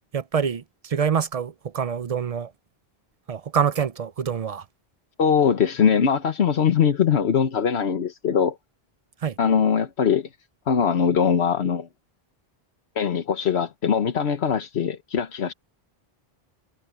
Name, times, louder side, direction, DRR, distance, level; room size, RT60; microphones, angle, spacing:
voice 1, 0.1-2.5 3.3-4.6 9.2-9.3, right 7 dB, 45° right, 0.6 m, -26 dB
voice 2, 5.2-8.6 9.4-10.3 10.7-11.9 13.0-15.5, left 7 dB, 85° left, 1.3 m, -21 dB
omnidirectional pair, 1.1 m